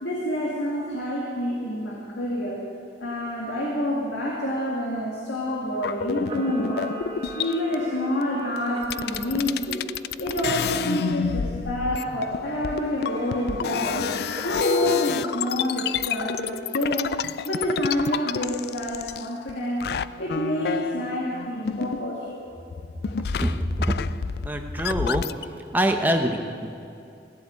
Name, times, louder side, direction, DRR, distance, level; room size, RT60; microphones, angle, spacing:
voice 1, 0.0-2.6 3.0-7.0 7.3-9.8 10.2-14.1 14.4-17.1 17.4-19.8 20.2-22.5, equal, 80° left, -4 dB, 2.2 m, -28 dB
sound 1, 5.7-7.8 8.6-8.7 8.8-19.5 19.8-22.4 22.7-25.5, left 7 dB, 60° left, 0.3 m, -29 dB
Camera, 6.2-9.5 13.0-13.8 14.3-16.1, right 2 dB, 30° right, 1.3 m, -40 dB
voice 2, 23.4-24.0 24.4-25.2 25.7-26.7, equal, 10° right, 4 dB, 0.9 m, -24 dB
16.5 x 7.8 x 9.5 m, 2.5 s
head